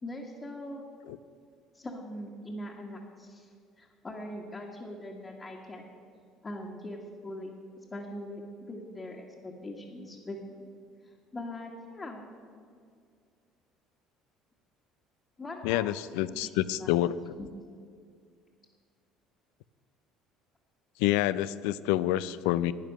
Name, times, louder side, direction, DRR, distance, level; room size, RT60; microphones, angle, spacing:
voice 1, 0.0-0.9 1.7-3.5 3.8-5.8 6.4-7.5 7.9-10.7 11.3-12.2 15.4-15.9 16.2-16.5 16.8-16.9 17.4-17.5, left 1 dB, 25° left, -3 dB, 1.6 m, -41 dB
voice 2, 15.6-17.3 21.0-22.7, left 14 dB, 80° left, 16 dB, 0.4 m, -28 dB
10.5 x 9.1 x 6.6 m, 2.2 s
supercardioid pair, 75°, 0 cm